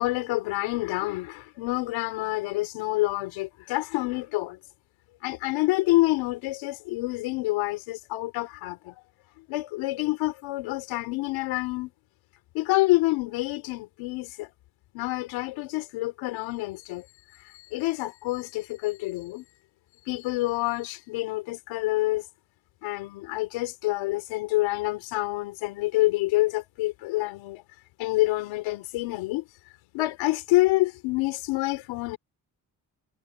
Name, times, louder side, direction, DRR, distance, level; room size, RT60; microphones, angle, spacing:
voice 1, 0.0-4.6 5.2-8.9 9.4-11.9 12.5-14.5 14.9-17.1 17.4-19.4 20.1-22.2 22.8-27.6 28.0-29.4 29.9-32.2, left 19 dB, 90° left, 3.0 m, -27 dB
hypercardioid pair, 45°, 45 cm